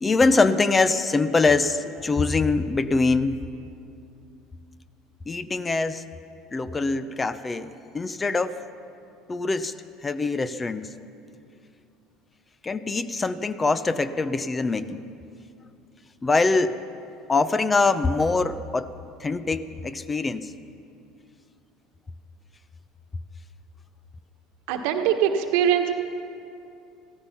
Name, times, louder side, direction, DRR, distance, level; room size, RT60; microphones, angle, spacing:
voice 1, 0.0-3.4 5.3-6.0 6.5-8.5 9.3-9.7 10.0-10.9 12.6-15.0 16.2-16.8 17.3-18.9 19.2-20.5, left 3 dB, 25° left, 13 dB, 0.7 m, -23 dB
voice 2, 24.7-25.9, right 9 dB, 70° right, 5 dB, 1.3 m, -22 dB
15.5 x 14.5 x 5.8 m, 2.6 s
hypercardioid pair, 75°, 0 cm